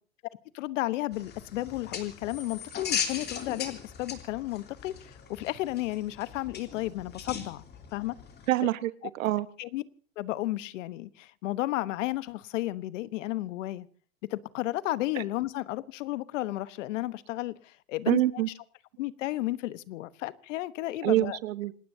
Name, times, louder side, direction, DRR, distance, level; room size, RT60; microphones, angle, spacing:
voice 1, 0.5-7.6 7.9-8.2 8.6-8.7 9.6-9.8 10.2-13.9 14.3-18.4 19.0-21.4, left 17 dB, 65° left, 16 dB, 1.1 m, -33 dB
sound 1, 1.1-8.5, left 7 dB, 25° left, 3.0 m, -38 dB
voice 2, 8.5-9.5 18.1-18.5 21.0-21.7, right 15 dB, 75° right, 14 dB, 1.3 m, -26 dB
27.5 x 18.5 x 2.7 m, 0.41 s
hypercardioid pair, 125°, 40 cm